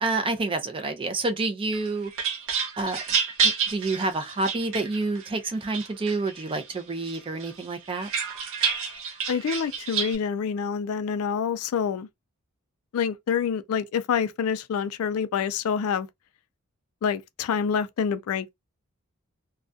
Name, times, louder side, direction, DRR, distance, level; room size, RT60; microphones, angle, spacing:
voice 1, 0.0-2.1 2.8-3.0 3.4-8.1, right 3 dB, 25° right, 0.4 m, -28 dB
sound 1, 1.7-5.3 5.7-6.6 7.1-10.2, right 6 dB, 60° right, 0.6 m, -29 dB
voice 2, 9.3-12.1 12.9-16.1 17.0-18.5, left 7 dB, 70° left, 0.3 m, -27 dB
2.3 x 2.2 x 2.5 m
head